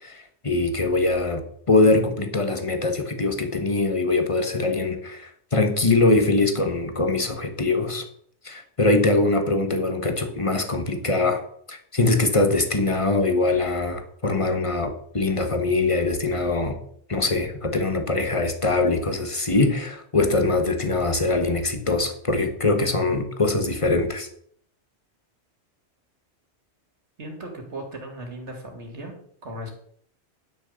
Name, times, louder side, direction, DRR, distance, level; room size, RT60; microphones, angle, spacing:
voice 1, 0.0-8.1 8.4-11.4 11.7-16.8 17.1-24.3, left 2 dB, 30° left, 6 dB, 1.5 m, -22 dB
voice 2, 27.2-29.1 29.4-29.8, right 1 dB, 90° right, 3 dB, 2.8 m, -37 dB
11.0 x 6.5 x 6.6 m, 0.64 s
omnidirectional pair, 1.2 m